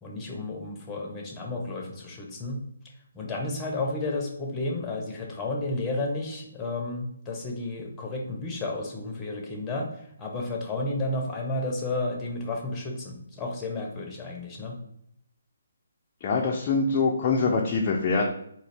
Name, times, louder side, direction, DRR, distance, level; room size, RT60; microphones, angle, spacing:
voice 1, 0.0-2.6 3.1-14.8, left 2 dB, 15° left, 0 dB, 0.8 m, -32 dB
voice 2, 16.2-18.3, left 4 dB, 30° left, -1 dB, 0.4 m, -24 dB
3.8 x 2.4 x 3.3 m, 0.73 s
figure-of-eight pair, 145°, 0 cm